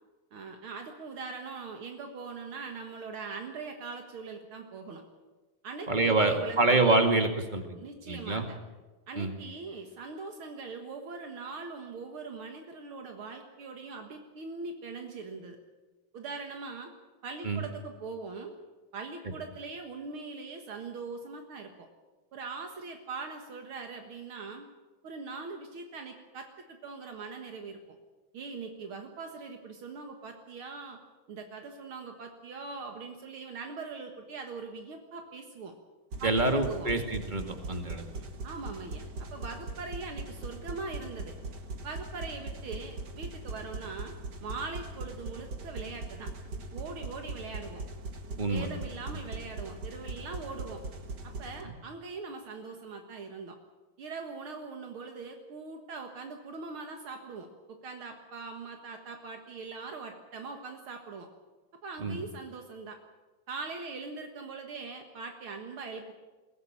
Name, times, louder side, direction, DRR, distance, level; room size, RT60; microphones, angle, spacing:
voice 1, 0.3-5.0 5.6-7.0 7.8-8.6 9.1-15.6 16.1-16.9 17.2-18.6 18.9-21.9 22.3-24.6 25.0-27.8 28.3-31.0 31.3-35.7 36.2-36.9 38.4-41.3 41.8-44.1 44.4-46.3 46.7-47.8 48.5-50.8 51.2-53.6 54.0-61.3 61.8-63.0 63.5-66.1, right 4 dB, 75° right, 4 dB, 2.5 m, -41 dB
voice 2, 5.9-7.8 8.1-8.4 9.2-9.3 17.4-17.6 36.2-38.2 48.4-48.7 62.0-62.2, right 2 dB, 20° right, 5 dB, 2.2 m, -26 dB
sound 1, 36.1-51.6, right 2 dB, 50° right, 2.2 m, -40 dB
22.0 x 16.5 x 8.8 m, 1.2 s
omnidirectional pair, 2.4 m